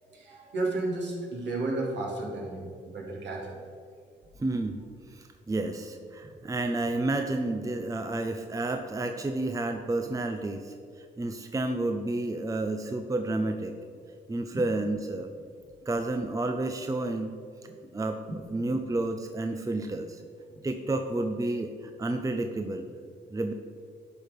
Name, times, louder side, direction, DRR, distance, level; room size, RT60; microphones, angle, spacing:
voice 1, 0.0-3.6 17.7-17.8 18.3-18.4 20.5-20.7, right 2 dB, 65° right, -3 dB, 2.5 m, -33 dB
voice 2, 4.4-4.8 5.1-13.7 14.3-15.3 15.9-17.3 17.9-18.2 18.5-20.2 20.6-21.7 22.0-22.9 23.3-23.5, right 2 dB, 15° right, 6 dB, 0.6 m, -30 dB
11.5 x 4.5 x 5.1 m, 2.1 s
cardioid pair, 75°, 20 cm